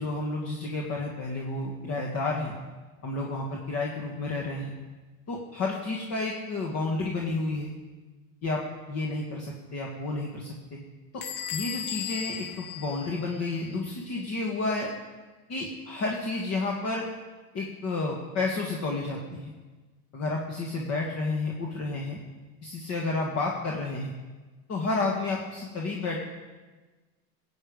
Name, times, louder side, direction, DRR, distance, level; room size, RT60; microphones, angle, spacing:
voice 1, 0.0-2.5 3.0-4.7 5.3-7.7 8.4-8.6 8.9-10.5 11.1-11.2 11.5-14.9 15.5-17.1 17.5-19.5 20.1-22.2 22.6-24.1 24.7-26.2, left 3 dB, 40° left, -1 dB, 1.9 m, -31 dB
Bell / Squeak, 11.2-13.7, left 9 dB, 85° left, 2.2 m, -36 dB
17.5 x 8.9 x 5.3 m, 1.3 s
supercardioid pair, 130°, 42 cm